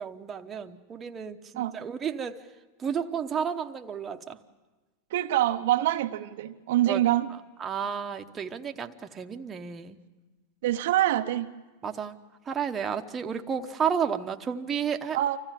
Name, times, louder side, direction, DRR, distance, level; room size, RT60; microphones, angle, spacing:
voice 1, 0.0-2.5 2.8-4.4 6.9-7.0 7.6-10.0 11.8-12.2 12.4-15.2, right 7 dB, 25° right, 5 dB, 1.0 m, -32 dB
voice 2, 5.1-7.3 10.6-11.5 15.1-15.4, right 14 dB, 70° right, 7 dB, 0.8 m, -25 dB
25.5 x 15.5 x 7.5 m, 1.2 s
hypercardioid pair, 120°, 0 cm